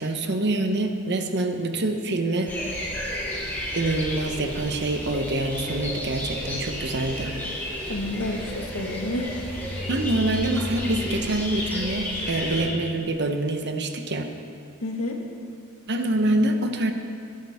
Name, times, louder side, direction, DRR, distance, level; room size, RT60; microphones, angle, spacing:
voice 1, 0.0-2.5 3.7-7.4 9.9-14.3 15.9-16.9, right 2 dB, 55° right, 6 dB, 1.0 m, -25 dB
sound 1, 2.5-12.7, equal, 10° left, 3.0 m, -32 dB
voice 2, 7.9-9.5 14.8-15.2, left 1 dB, 80° left, 2 dB, 1.6 m, -30 dB
21.0 x 11.5 x 3.6 m, 2.3 s
head